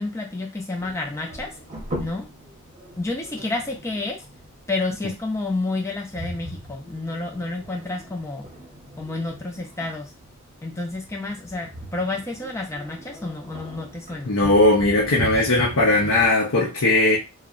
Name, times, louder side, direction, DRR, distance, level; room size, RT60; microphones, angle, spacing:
voice 1, 0.0-1.5 2.0-2.2 3.0-4.2 4.7-8.5 9.0-10.1 10.6-14.3, left 2 dB, 15° left, 0.5 m, -30 dB
sound 1, 0.8-16.3, right 1 dB, 35° right, 0.8 m, -39 dB
voice 2, 14.3-17.2, left 2 dB, 80° left, 0.6 m, -18 dB
2.7 x 2.0 x 2.4 m
head